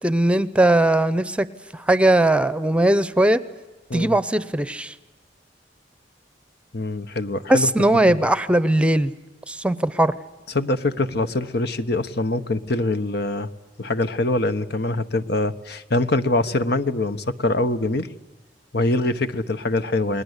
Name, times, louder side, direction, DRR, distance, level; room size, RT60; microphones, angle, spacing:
voice 1, 0.0-1.5 1.7-3.4 3.9-4.9 7.5-9.1 9.5-10.1, right 1 dB, 5° right, 15 dB, 0.8 m, -19 dB
voice 2, 6.7-7.7 10.5-13.5 13.8-18.1 18.7-20.2, left 2 dB, 65° left, 11 dB, 1.2 m, -24 dB
29.5 x 21.5 x 8.2 m, 1.2 s
head